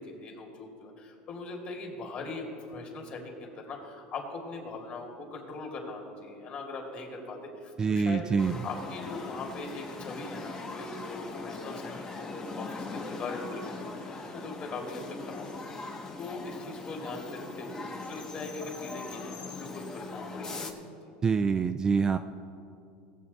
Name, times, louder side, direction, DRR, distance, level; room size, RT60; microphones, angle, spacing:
voice 1, 0.0-8.4 8.6-20.8, left 3 dB, 40° left, 1 dB, 2.5 m, -41 dB
voice 2, 7.8-8.5 21.2-22.2, right 5 dB, 20° right, 9 dB, 0.3 m, -25 dB
sound 1, 8.4-20.7, left 3 dB, 20° left, 1.0 m, -40 dB
19.5 x 7.8 x 4.1 m, 2.5 s
supercardioid pair, 145°, 4 cm